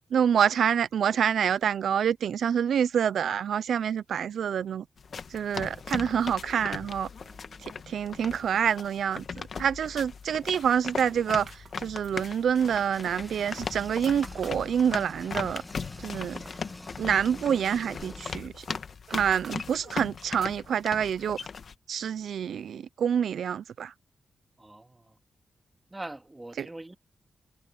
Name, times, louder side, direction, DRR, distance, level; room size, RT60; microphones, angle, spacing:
voice 1, 0.1-4.8 5.3-7.1 7.6-15.6 16.0-16.4 17.0-18.6 19.1-21.4 21.9-23.9 26.6-26.7, right 8 dB, 85° right, 0.4 m, -27 dB
sound 1, 5.0-21.7, left 6 dB, 60° left, 1.2 m, -39 dB
voice 2, 7.2-7.6 24.6-25.2 25.9-27.0, right 2 dB, 15° right, 2.0 m, -44 dB
sound 2, 11.4-15.2 15.7-16.7 17.1-20.1, right 5 dB, 60° right, 1.7 m, -51 dB
sound 3, 12.9-18.3, left 1 dB, 15° left, 1.7 m, -46 dB
cardioid pair, 90°, 0 cm